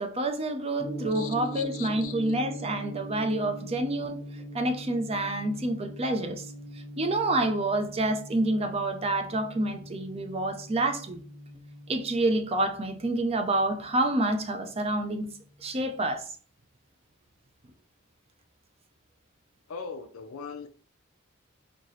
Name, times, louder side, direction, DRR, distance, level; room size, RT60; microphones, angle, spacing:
voice 1, 0.0-4.2 4.5-6.4 7.0-11.2 11.9-15.3 15.6-16.2, right 2 dB, 30° right, 0.5 m, -28 dB
Gong, 0.8-15.0, equal, 20° left, 0.6 m, -42 dB
voice 2, 1.1-2.3 19.7-20.7, left 6 dB, 75° left, 0.4 m, -40 dB
4.4 x 2.8 x 3.0 m
head